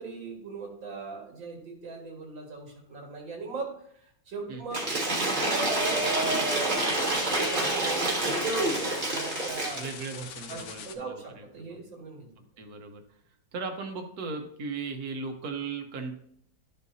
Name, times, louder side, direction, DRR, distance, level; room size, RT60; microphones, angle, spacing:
voice 1, 0.0-6.9 7.3-8.5 9.1-9.8 10.5-12.3, right 4 dB, 85° right, -1 dB, 2.5 m, -39 dB
Cheering / Applause / Crowd, 4.7-9.9, right 2 dB, 25° right, 1.4 m, -27 dB
sound 1, 5.6-10.9, left 7 dB, 70° left, 1.3 m, -43 dB
voice 2, 9.7-11.8 12.6-13.0 13.5-16.1, right 4 dB, 55° right, 4 dB, 1.4 m, -37 dB
12.0 x 5.4 x 2.7 m, 0.68 s
omnidirectional pair, 2.1 m